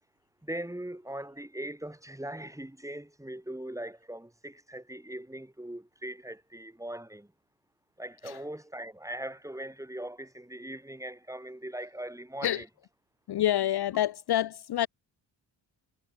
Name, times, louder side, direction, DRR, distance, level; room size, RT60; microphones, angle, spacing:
voice 1, 0.4-7.3 8.0-12.7, right 1 dB, 5° right, 4.2 m, -40 dB
voice 2, 13.3-14.9, left 12 dB, 55° left, 0.8 m, -27 dB
supercardioid pair, 60°, 46 cm